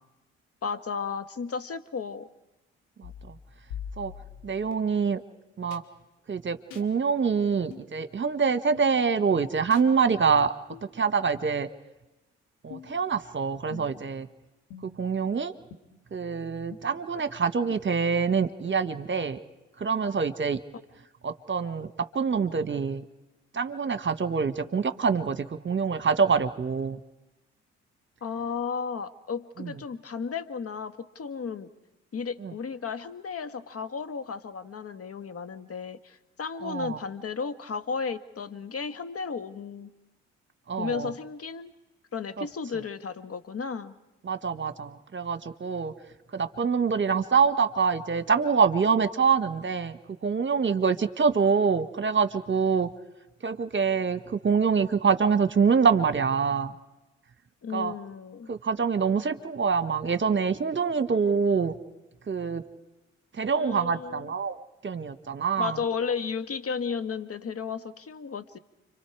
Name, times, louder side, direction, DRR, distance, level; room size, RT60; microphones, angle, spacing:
voice 1, 0.6-2.3 28.2-31.7 32.1-39.9 40.8-41.7 42.1-44.0 57.6-58.5 63.5-64.3 65.6-68.6, left 5 dB, 40° left, 12 dB, 1.6 m, -34 dB
sound 1, 3.0-4.7 5.7-5.8 6.7-6.9 7.7-7.9 8.7-8.9 9.7-9.9 10.7-10.9 11.7-11.8 12.7-13.0 13.7-14.1 14.7-15.1 15.7-15.8 16.7-16.8 17.7-17.8, left 8 dB, 75° left, 2.3 m, -43 dB
voice 2, 3.0-3.3 4.0-4.1 4.4-5.2 5.6-5.8 6.3-10.5 10.9-11.7 12.6-14.3 14.8-15.5 16.1-19.4 19.8-20.6 21.2-23.0 23.5-27.0 29.6-29.7 32.4-32.5 36.6-37.0 40.7-41.1 42.4-42.5 44.2-45.9 46.3-52.9 53.4-56.7 57.7-57.9 58.5-61.7 62.3-62.6 63.3-64.6 64.8-65.8, right 5 dB, 35° right, 12 dB, 1.5 m, -25 dB
30.0 x 25.0 x 4.8 m, 1.0 s
hypercardioid pair, 45°, 35 cm